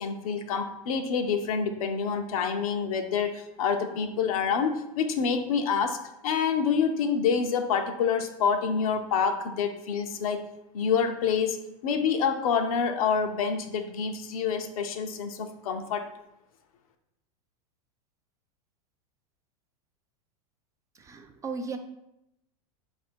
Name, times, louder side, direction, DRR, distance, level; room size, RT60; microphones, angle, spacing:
voice 1, 0.0-10.4 10.7-11.6 11.8-16.1, left 6 dB, 70° left, 6 dB, 0.6 m, -27 dB
voice 2, 21.1-21.8, right 4 dB, 15° right, 6 dB, 0.3 m, -35 dB
4.3 x 2.6 x 4.3 m, 0.85 s
hypercardioid pair, 115°, 19 cm